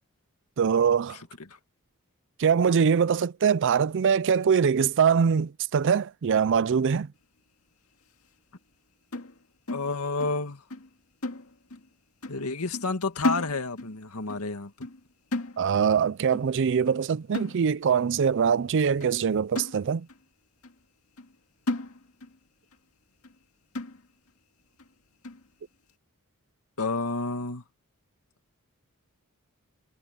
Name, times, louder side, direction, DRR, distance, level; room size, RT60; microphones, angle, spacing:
voice 1, 0.6-1.2 2.4-7.1 15.6-20.1, right 6 dB, 55° right, 0.4 m, -23 dB
sound 1, 9.1-10.4 10.7-10.9 11.2-11.9 12.2-12.5 12.7-14.0 14.3-14.5 14.8-15.1 15.3-16.0 16.3-16.6 16.9-17.0 17.3-18.0 18.5-18.6 19.0-19.1 19.6-20.2 20.6-20.7 21.2-21.4 21.7-22.4 22.7-22.8 23.2-23.4 23.8-24.3 24.8-24.9 25.2-25.5, left 2 dB, 75° left, 2.1 m, -34 dB
voice 2, 9.7-10.6 12.3-14.9 26.8-27.6, left 3 dB, 90° left, 2.1 m, -30 dB
head